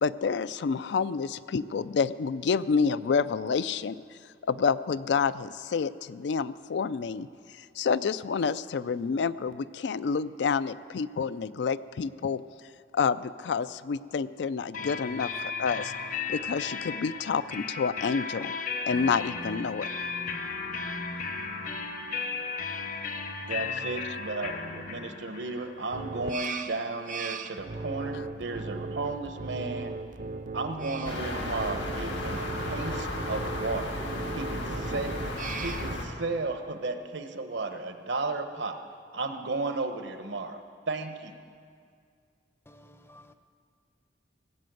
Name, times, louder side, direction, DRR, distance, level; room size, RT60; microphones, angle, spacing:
voice 1, 0.0-4.0 4.5-7.3 7.6-12.4 12.9-15.9 16.3-18.5 18.9-19.9, left 5 dB, 70° left, 15 dB, 0.4 m, -28 dB
sound 1, 14.7-28.3, left 5 dB, 45° left, 0.9 m, -36 dB
voice 2, 23.5-29.9 30.5-34.0 34.3-38.8 39.1-41.3, right 3 dB, 75° right, 7 dB, 1.0 m, -34 dB
sound 2, 25.9-36.0, right 3 dB, 45° right, 0.5 m, -37 dB
sound 3, 31.0-36.1, left 1 dB, 85° left, 1.8 m, -34 dB
voice 3, 42.7-43.3, left 1 dB, 15° left, 8 dB, 0.6 m, -54 dB
17.5 x 7.7 x 7.8 m, 2.2 s
head